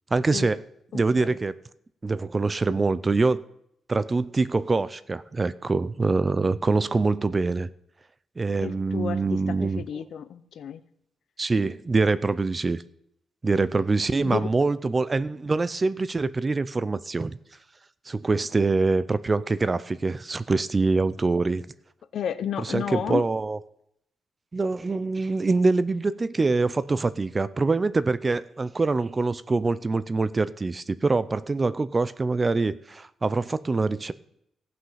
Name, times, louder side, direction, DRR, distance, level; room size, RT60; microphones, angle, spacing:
voice 1, 0.1-0.6 0.9-1.5 2.0-3.4 3.9-7.7 8.4-9.8 11.4-12.8 13.4-17.4 18.1-21.7 22.6-23.6 24.5-34.1, right 3 dB, 20° right, 16 dB, 0.4 m, -24 dB
voice 2, 0.9-1.4 8.6-10.8 14.2-14.5 22.1-23.2, left 8 dB, 65° left, 13 dB, 0.7 m, -32 dB
16.5 x 6.0 x 5.7 m, 0.75 s
wide cardioid pair, 150°, 0 cm